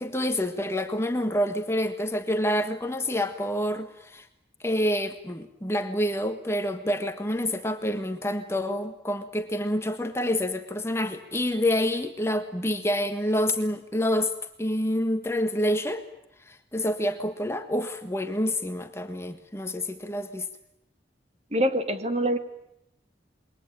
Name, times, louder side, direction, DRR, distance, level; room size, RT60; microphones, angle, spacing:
voice 1, 0.0-4.3 4.6-14.3 14.6-16.0 16.5-20.5, left 1 dB, 15° left, 8 dB, 1.6 m, -27 dB
voice 2, 21.5-22.4, right 1 dB, 35° right, 8 dB, 2.5 m, -25 dB
28.0 x 23.0 x 9.0 m, 0.82 s
head